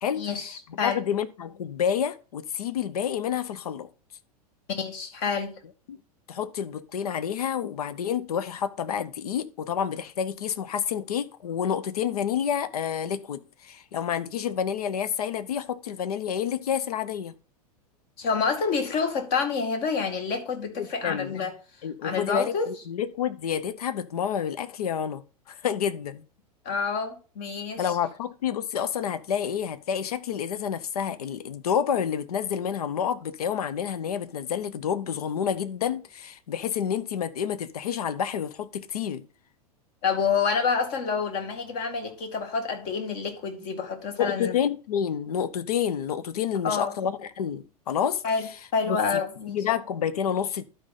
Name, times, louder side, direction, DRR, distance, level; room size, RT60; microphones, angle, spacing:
voice 1, 0.2-1.0 4.7-5.5 18.2-21.5 22.0-22.7 26.7-27.9 40.0-44.6 46.6-46.9 48.2-48.5 48.7-49.6, left 5 dB, 50° left, 2.2 m, -28 dB
voice 2, 0.8-3.9 5.9-6.0 6.3-17.3 20.8-21.4 21.8-25.2 25.5-26.2 27.8-39.2 44.2-48.2 48.9-49.2 49.5-50.6, left 8 dB, 70° left, 0.8 m, -29 dB
12.0 x 5.2 x 4.1 m
figure-of-eight pair, 90°, 20 cm